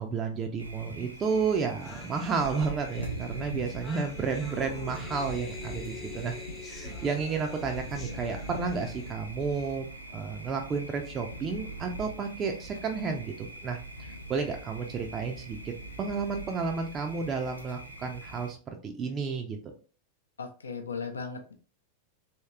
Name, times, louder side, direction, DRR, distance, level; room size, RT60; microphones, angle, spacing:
voice 1, 0.0-6.3 6.6-9.9 10.1-13.8 14.3-18.6 18.8-19.7, right 5 dB, 25° right, 3 dB, 0.4 m, -32 dB
Thunder, 0.6-18.5, right 1 dB, 85° right, 0.5 m, -42 dB
sound 1, 1.3-1.4 1.5-9.1, left 5 dB, 25° left, 0.6 m, -46 dB
voice 2, 20.4-21.5, left 5 dB, 75° left, 5 dB, 0.5 m, -37 dB
3.1 x 2.9 x 2.3 m, 0.37 s
figure-of-eight pair, 90°, 0 cm